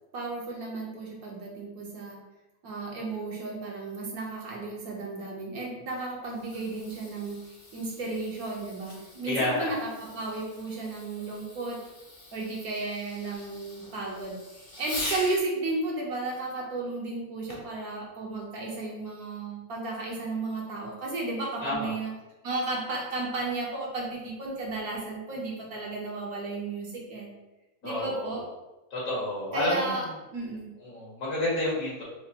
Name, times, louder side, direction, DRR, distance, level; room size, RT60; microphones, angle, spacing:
voice 1, 0.1-2.2 2.6-7.4 7.7-11.8 12.3-22.1 22.4-27.3 27.8-28.4 29.5-30.1 30.3-30.7, right 2 dB, 70° right, -2 dB, 1.4 m, -34 dB
Fireworks, 6.2-15.5 17.5-17.8 18.5-18.6, left 1 dB, 30° left, 0.6 m, -42 dB
voice 2, 9.2-9.7 21.6-21.9 27.8-28.3 28.9-30.0 30.8-32.0, left 1 dB, 75° left, -7 dB, 2.1 m, -30 dB
4.7 x 2.5 x 2.9 m, 1.1 s
omnidirectional pair, 1.6 m